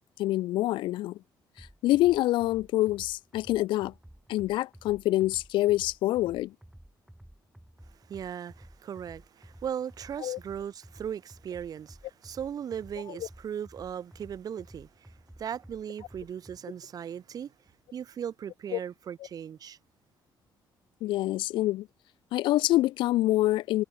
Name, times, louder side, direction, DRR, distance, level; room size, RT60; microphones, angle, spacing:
voice 1, 0.2-1.2 1.6-3.9 4.3-6.5 10.2-10.4 18.7-18.8 21.0-21.9 22.3-23.8, left 16 dB, 80° left, 0.4 m, -26 dB
sound 1, 1.6-16.6, right 1 dB, 5° right, 2.1 m, -53 dB
voice 2, 7.9-17.5 17.9-19.8, right 8 dB, 50° right, 1.7 m, -38 dB
cardioid pair, 115°, 8 cm